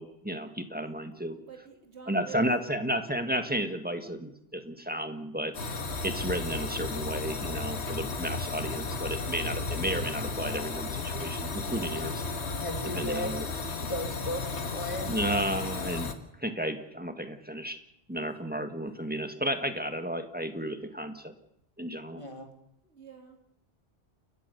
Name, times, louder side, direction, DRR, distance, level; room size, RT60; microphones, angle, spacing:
voice 1, 0.0-1.4 2.1-12.2 12.9-13.5 15.0-16.1 16.4-17.8 18.1-21.3 21.8-22.2, equal, 10° right, 7 dB, 1.7 m, -33 dB
voice 2, 1.4-2.5 22.4-22.5 22.8-23.4, right 8 dB, 80° right, 3 dB, 3.1 m, -46 dB
sound 1, 5.5-16.1, left 3 dB, 85° left, 1.8 m, -34 dB
voice 3, 12.6-13.4 13.8-15.1 22.2-22.5, left 1 dB, 30° left, 5 dB, 2.9 m, -36 dB
29.5 x 14.5 x 7.0 m, 0.76 s
omnidirectional pair, 1.1 m